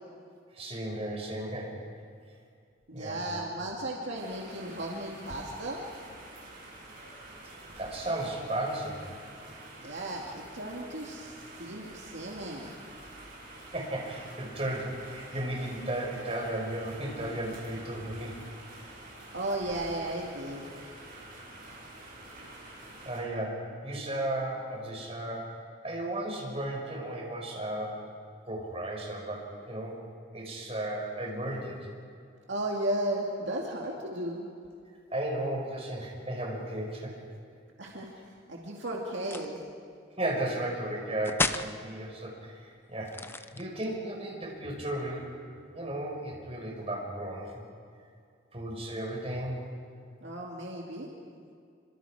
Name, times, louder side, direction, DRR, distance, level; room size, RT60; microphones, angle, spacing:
voice 1, 0.5-1.8 2.9-3.2 7.8-9.0 13.7-18.4 23.0-25.5 25.8-28.0 28.4-30.0 30.3-31.8 35.1-37.1 40.2-45.3 45.7-47.5 48.5-49.6, right 1 dB, 30° right, -2 dB, 5.2 m, -34 dB
voice 2, 2.9-5.8 9.8-12.8 19.3-20.7 32.5-34.5 37.8-38.1 38.5-39.6 50.2-51.1, right 1 dB, 70° right, -2 dB, 2.4 m, -35 dB
sound 1, 4.1-23.2, right 2 dB, 45° right, 7.5 m, -48 dB
sound 2, 39.2-39.6 41.2-41.7 43.0-43.9, left 3 dB, 10° left, 0.5 m, -32 dB
27.5 x 25.5 x 5.0 m, 2.3 s
head